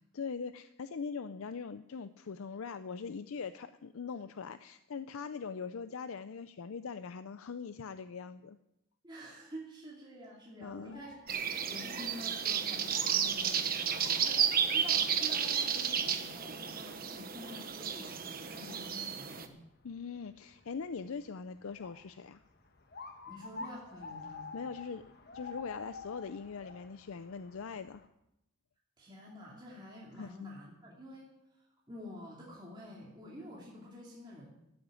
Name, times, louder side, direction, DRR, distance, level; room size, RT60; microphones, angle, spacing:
voice 1, 0.1-8.6 10.6-11.0 19.8-22.4 24.5-25.0 25.3-28.0 30.2-30.3, left 5 dB, 70° left, 12 dB, 0.5 m, -41 dB
voice 2, 9.0-19.5 23.3-24.5 29.0-34.5, equal, 20° right, -4 dB, 2.5 m, -49 dB
sound 1, 10.7-28.1, left 4 dB, 45° left, 1.4 m, -51 dB
sound 2, 11.3-19.5, right 8 dB, 40° right, 1.1 m, -32 dB
13.0 x 8.7 x 9.0 m, 0.86 s
head